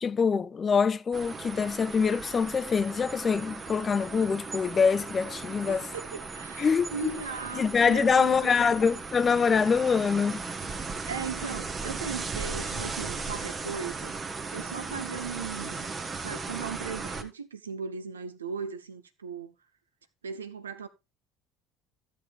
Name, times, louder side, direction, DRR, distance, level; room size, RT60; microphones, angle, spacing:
voice 1, 0.0-5.9 6.6-7.1 7.5-10.5, left 5 dB, 30° left, 0.6 m, -25 dB
sound 1, 1.1-17.2, right 4 dB, 30° right, 1.3 m, -37 dB
voice 2, 5.7-8.6 11.0-14.2 14.5-15.9 16.2-19.5 20.2-20.9, right 6 dB, 80° right, 0.7 m, -37 dB
13.5 x 7.3 x 3.3 m
figure-of-eight pair, 60°, 0 cm